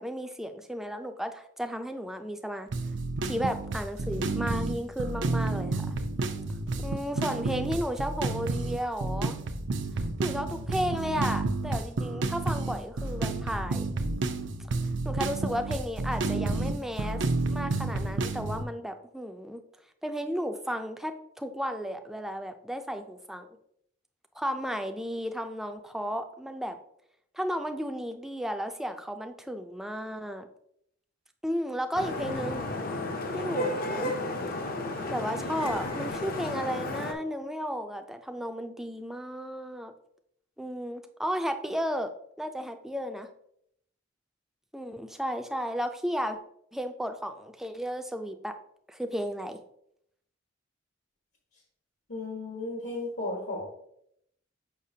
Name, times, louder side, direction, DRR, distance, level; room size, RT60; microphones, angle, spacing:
voice 1, 0.0-2.7 3.2-5.9 6.8-9.4 10.2-13.9 15.0-17.2 17.5-19.6 20.0-23.5 24.4-26.8 27.3-30.5 31.4-32.7 33.3-34.1 35.1-39.9 40.6-42.1 42.4-43.3 44.7-46.4 46.7-48.5 48.9-49.6, equal, ahead, 6 dB, 0.4 m, -33 dB
sound 1, 2.7-18.6, right 3 dB, 70° right, 0.6 m, -30 dB
Vehicle horn car horn honking / Traffic noise roadway noise, 31.9-37.1, left 2 dB, 50° left, 0.6 m, -33 dB
voice 2, 52.1-53.6, left 2 dB, 75° left, -1 dB, 1.4 m, -34 dB
6.6 x 5.5 x 2.8 m, 0.72 s
head